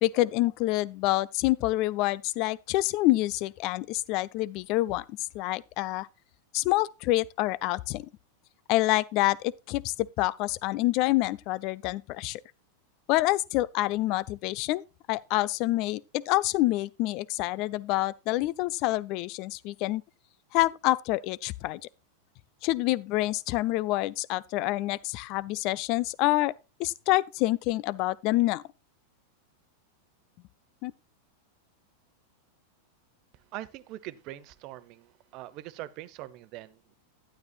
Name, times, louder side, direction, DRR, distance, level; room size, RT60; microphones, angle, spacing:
voice 1, 0.0-6.1 6.5-8.1 8.7-12.4 13.1-14.8 15.1-20.0 20.5-21.8 22.6-26.5 26.8-28.6 30.8-30.9, left 18 dB, 40° left, 0.5 m, -27 dB
voice 2, 33.3-36.9, right 15 dB, 40° right, 0.9 m, -43 dB
12.0 x 10.0 x 2.4 m
figure-of-eight pair, 90°, 0 cm